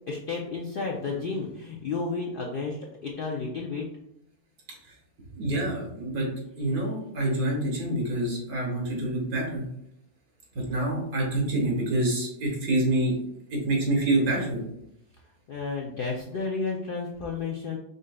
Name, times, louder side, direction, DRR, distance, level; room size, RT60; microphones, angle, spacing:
voice 1, 0.1-3.9 15.5-17.8, left 4 dB, 70° left, 0 dB, 0.5 m, -32 dB
voice 2, 5.4-6.3 6.6-9.6 10.7-13.1 13.5-14.6, right 1 dB, 85° right, -2 dB, 1.9 m, -26 dB
5.3 x 3.7 x 2.2 m, 0.78 s
omnidirectional pair, 1.5 m